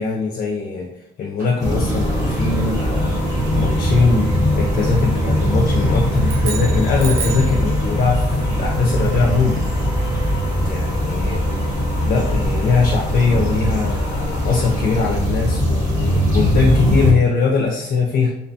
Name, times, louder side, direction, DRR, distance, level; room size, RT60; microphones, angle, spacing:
voice 1, 0.0-3.2 3.6-9.6 10.7-11.4 12.0-18.3, left 4 dB, 50° left, 0 dB, 0.4 m, -21 dB
sound 1, 1.4-15.7, left 1 dB, 50° right, 1.1 m, -35 dB
sound 2, 1.6-17.1, equal, 15° right, 1.1 m, -20 dB
sound 3, 6.2-7.6, right 7 dB, 80° right, 0.6 m, -30 dB
2.7 x 2.1 x 2.7 m, 0.85 s
cardioid pair, 90°, 20 cm